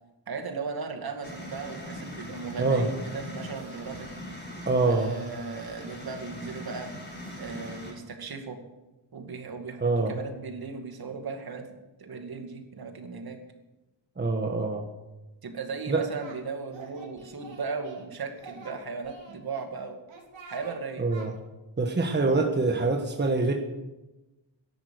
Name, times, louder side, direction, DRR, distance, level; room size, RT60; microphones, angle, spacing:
voice 1, 0.3-4.1 4.9-6.9 7.4-8.6 9.1-11.7 12.0-13.4 15.4-20.0 20.5-21.1, right 4 dB, 55° right, 4 dB, 2.4 m, -36 dB
sound 1, 1.2-7.9, equal, 20° left, 6.0 m, -41 dB
voice 2, 4.7-5.1 9.8-10.1 14.2-14.9 15.9-16.0 21.0-21.3 21.8-23.5, right 3 dB, 25° right, 3 dB, 1.4 m, -25 dB
Singing, 15.7-16.4 16.7-18.1 18.4-19.7 20.1-20.8 21.1-21.3, right 3 dB, 80° right, 3.5 m, -47 dB
12.5 x 11.5 x 7.9 m, 1.0 s
wide cardioid pair, 135°, 45 cm